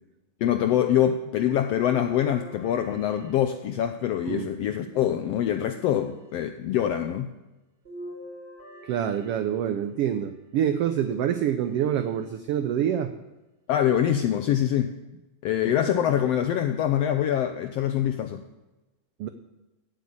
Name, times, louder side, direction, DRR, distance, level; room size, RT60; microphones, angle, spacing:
voice 1, 0.4-7.3 13.7-14.9 15.4-18.4, left 10 dB, 80° left, 8 dB, 1.4 m, -24 dB
sound 1, 1.8-4.1 4.8-5.9 7.8-9.9 10.8-11.7 12.4-12.5 13.8-13.9, equal, 20° right, 3.9 m, -45 dB
voice 2, 8.8-13.1 15.6-16.0 19.2-19.3, right 9 dB, 85° right, 9 dB, 1.3 m, -26 dB
12.5 x 8.3 x 8.6 m, 1.1 s
omnidirectional pair, 3.5 m